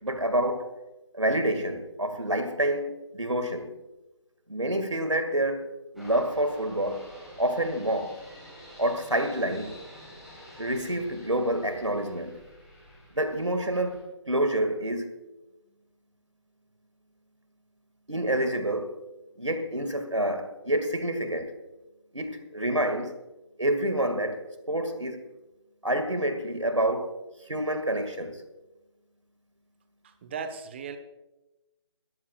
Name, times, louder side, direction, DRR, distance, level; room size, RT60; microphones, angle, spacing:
voice 1, 0.0-0.7 1.1-3.7 4.5-5.7 5.9-7.0 7.4-8.2 8.8-9.7 10.6-12.4 13.2-15.1 18.1-19.0 19.4-21.5 22.1-23.1 23.6-25.2 25.8-27.1 27.5-28.4, right 1 dB, 90° right, 2.1 m, -28 dB
sound 1, 6.0-14.0, equal, ahead, 4.0 m, -49 dB
voice 2, 30.0-31.0, right 6 dB, 25° right, 1.0 m, -37 dB
21.5 x 14.0 x 2.4 m
figure-of-eight pair, 150°, 15 cm